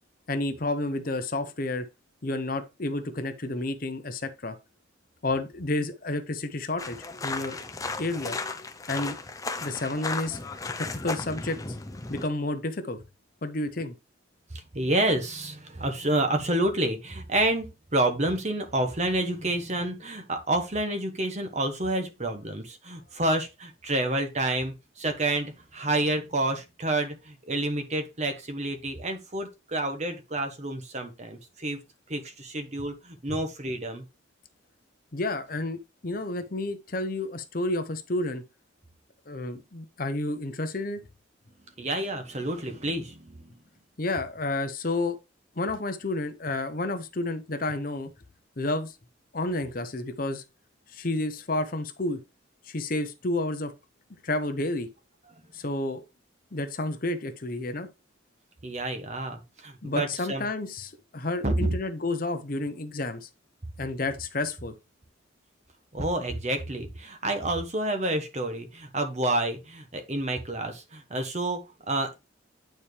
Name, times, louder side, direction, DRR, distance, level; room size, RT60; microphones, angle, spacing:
voice 1, 0.3-1.9 2.2-4.6 5.2-7.0 7.2-7.6 8.0-8.4 8.9-9.2 9.6-10.4 10.8-11.6 12.1-13.0 13.4-13.9 35.1-38.4 39.3-41.0 44.0-45.2 45.6-48.1 48.6-48.9 49.3-50.4 50.9-52.2 52.7-53.7 54.2-54.9 55.5-56.0 56.5-57.9 59.8-63.3 63.8-64.7, left 2 dB, 45° left, 0.8 m, -30 dB
sound 1, 6.8-12.3, left 3 dB, 15° left, 0.5 m, -35 dB
voice 2, 14.5-31.8 32.1-34.0 41.8-43.5 58.6-60.4 61.4-61.7 65.9-72.1, right 1 dB, 35° right, 1.2 m, -29 dB
9.1 x 4.3 x 3.3 m
head